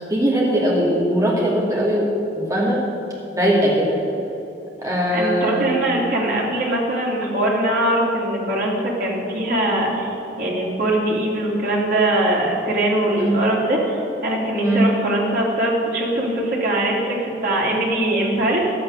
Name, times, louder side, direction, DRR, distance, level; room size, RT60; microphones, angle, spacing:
voice 1, 0.1-2.1 2.3-2.8 3.3-4.0 4.8-5.7 13.2-13.4 14.6-14.9, equal, 20° right, -5 dB, 2.6 m, -20 dB
voice 2, 5.1-18.7, right 1 dB, 50° right, -4 dB, 2.9 m, -21 dB
11.5 x 8.9 x 6.6 m, 3.0 s
head